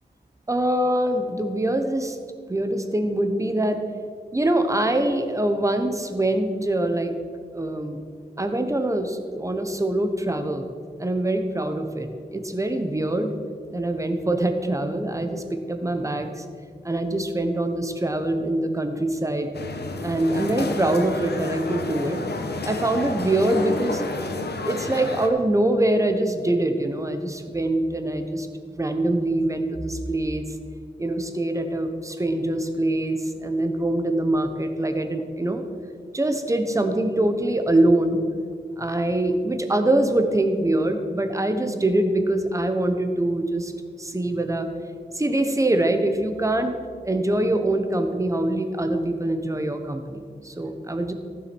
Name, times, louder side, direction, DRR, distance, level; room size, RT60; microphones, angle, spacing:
voice 1, 0.5-2.2 2.5-3.8 4.3-7.2 7.5-8.0 8.4-10.7 11.0-13.3 13.7-16.4 16.8-19.5 20.0-22.2 22.6-24.0 24.6-28.5 28.8-30.5 31.0-35.6 36.1-38.2 38.8-43.7 44.0-44.7 45.1-46.8 47.0-51.1, right 1 dB, 15° right, 7 dB, 1.0 m, -24 dB
sound 1, 19.5-25.3, left 3 dB, 65° left, 1.3 m, -30 dB
15.0 x 7.2 x 6.1 m, 2.1 s
wide cardioid pair, 145°, 18 cm